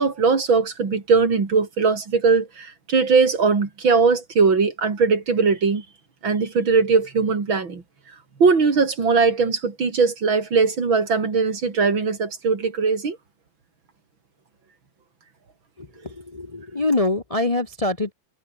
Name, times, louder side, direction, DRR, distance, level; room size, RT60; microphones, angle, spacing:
voice 1, 0.0-5.8 6.2-7.8 8.4-13.2, right 4 dB, 80° right, 4.1 m, -20 dB
voice 2, 16.2-18.1, left 2 dB, 25° left, 1.0 m, -24 dB
omnidirectional pair, 2.1 m